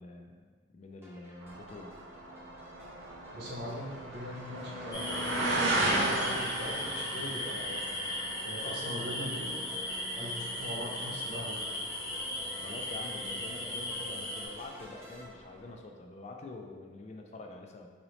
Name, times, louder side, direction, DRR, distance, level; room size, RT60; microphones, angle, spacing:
voice 1, 0.0-2.0 12.5-17.9, left 2 dB, 40° left, 3 dB, 0.3 m, -46 dB
sound 1, 1.0-15.3, equal, 15° right, 0.6 m, -51 dB
sound 2, 1.4-13.9 14.1-14.7 15.3-15.4, right 1 dB, 85° right, 0.6 m, -36 dB
voice 2, 3.3-7.8 8.4-9.5 10.1-11.6, equal, 60° right, -4 dB, 0.9 m, -41 dB
sound 3, 4.9-14.5, left 1 dB, 20° left, 0.7 m, -37 dB
4.0 x 2.7 x 3.1 m, 1.5 s
head